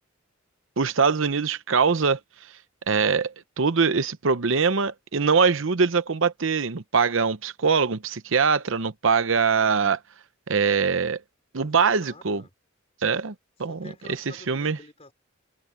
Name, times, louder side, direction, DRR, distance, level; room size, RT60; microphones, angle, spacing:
voice 1, 0.8-2.2 2.9-10.0 10.5-11.2 11.5-12.4 13.0-13.3 13.6-13.9 14.5-14.8, right 5 dB, 65° right, 0.8 m, -22 dB
voice 2, 11.6-12.5 13.7-15.1, left 2 dB, 30° left, 4.5 m, -48 dB
head